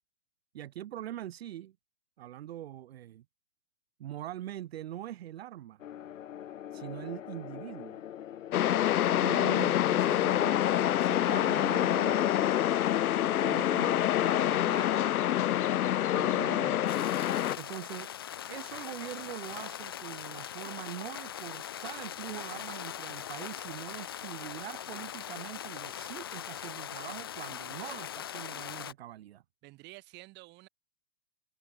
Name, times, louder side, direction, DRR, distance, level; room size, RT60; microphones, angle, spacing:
voice 1, 0.5-1.8 2.2-3.2 4.0-5.8 6.7-8.0 9.1-12.3 13.4-14.0 14.3-15.1 16.1-17.0 17.6-18.1 18.5-29.4, right 12 dB, 45° right, 1.0 m, -43 dB
sound 1, 5.8-14.4, left 10 dB, 60° left, 1.5 m, -36 dB
sound 2, 8.5-17.6, left 12 dB, 75° left, 0.7 m, -27 dB
sound 3, 16.9-28.9, left 10 dB, 15° left, 0.5 m, -41 dB
voice 2, 29.6-30.7, right 21 dB, 25° right, 6.8 m, -50 dB
open air
hypercardioid pair, 155°, 44 cm